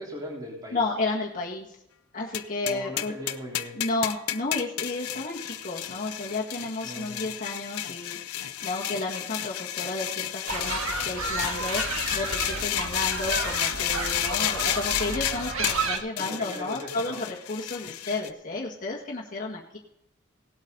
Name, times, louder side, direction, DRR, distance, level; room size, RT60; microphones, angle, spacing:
voice 1, 0.0-0.8 2.6-3.8 6.8-7.3 16.2-17.2, equal, 20° right, -4 dB, 3.6 m, -39 dB
voice 2, 0.7-1.7 2.1-3.1 3.7-8.2 8.6-11.8 12.1-19.8, left 3 dB, 40° left, -2 dB, 1.8 m, -32 dB
sound 1, 2.3-18.3, left 12 dB, 90° left, 0.6 m, -32 dB
sound 2, 10.5-16.0, right 3 dB, 70° right, 1.6 m, -31 dB
18.5 x 8.4 x 4.0 m, 0.82 s
head